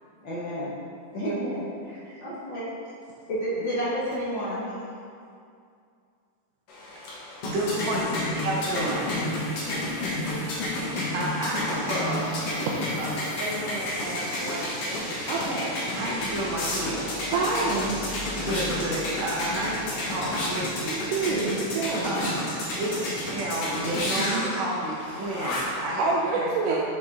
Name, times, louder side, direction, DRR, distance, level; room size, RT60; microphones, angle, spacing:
voice 1, 0.2-0.7 1.1-2.7 3.3-4.7, equal, 70° left, -8 dB, 1.1 m, -30 dB
sound 1, 6.7-25.9, left 1 dB, 90° left, 3.1 m, -31 dB
voice 2, 6.9-8.1 8.4-9.2 11.1-12.3 13.0-15.1 15.9-17.1 18.4-21.0 22.0-26.0 26.3-26.8, right 1 dB, 65° right, -5 dB, 2.3 m, -31 dB
sound 2, 7.5-23.4, right 1 dB, 45° right, 1.6 m, -41 dB
voice 3, 15.3-15.7 17.3-18.0 21.1-22.3 24.2-24.5 26.0-26.8, right 3 dB, 85° right, -5 dB, 2.2 m, -27 dB
7.1 x 6.1 x 3.7 m, 2.4 s
omnidirectional pair, 3.6 m